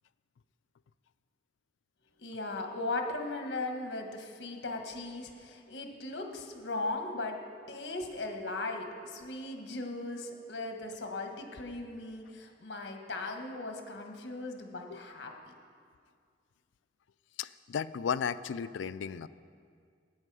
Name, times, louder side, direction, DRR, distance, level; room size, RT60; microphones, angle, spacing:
voice 1, 2.2-7.4 7.7-15.5, left 2 dB, 65° left, 4 dB, 1.3 m, -38 dB
voice 2, 17.4-19.3, left 7 dB, 85° left, 15 dB, 0.4 m, -34 dB
13.0 x 9.2 x 4.8 m, 2.2 s
head